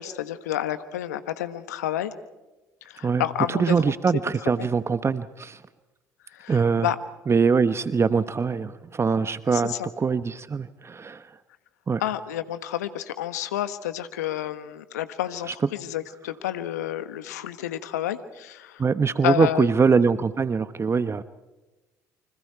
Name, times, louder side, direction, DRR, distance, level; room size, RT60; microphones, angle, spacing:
voice 1, 0.0-2.1 2.8-3.8 4.6-4.7 6.3-7.0 9.5-9.9 12.0-18.8 19.2-19.7, left 12 dB, 85° left, 12 dB, 1.3 m, -30 dB
voice 2, 3.0-5.6 6.5-6.9 7.3-11.3 11.9-12.0 18.8-21.2, right 5 dB, 30° right, 13 dB, 1.0 m, -23 dB
28.5 x 25.5 x 4.7 m, 1.1 s
hypercardioid pair, 60°, 9 cm